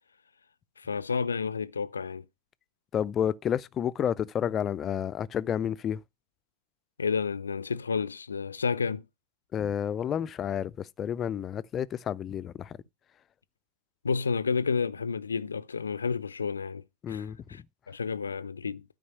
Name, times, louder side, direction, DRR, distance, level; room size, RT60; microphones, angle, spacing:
voice 1, 0.8-2.3 7.0-9.0 14.0-18.8, left 5 dB, 75° left, 0.6 m, -31 dB
voice 2, 2.9-6.0 9.5-12.8 17.0-17.4, left 9 dB, 25° left, 0.5 m, -30 dB
12.5 x 5.3 x 6.7 m
figure-of-eight pair, 90°, 0 cm